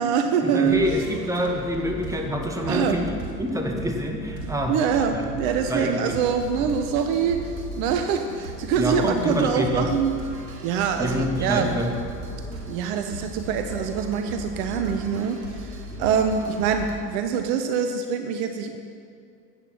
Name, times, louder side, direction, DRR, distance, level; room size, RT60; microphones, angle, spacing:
voice 1, 0.0-0.8 2.7-3.0 4.7-10.2 10.6-11.7 12.7-18.8, right 7 dB, 55° right, 7 dB, 1.1 m, -24 dB
voice 2, 0.5-4.7 5.1-5.3 5.7-6.2 6.6-6.7 8.8-9.9 11.0-11.9, equal, 5° right, 2 dB, 1.7 m, -26 dB
sound 1, 0.6-16.9, right 1 dB, 80° right, 2.6 m, -37 dB
13.0 x 9.0 x 6.0 m, 2.3 s
hypercardioid pair, 85°, 50 cm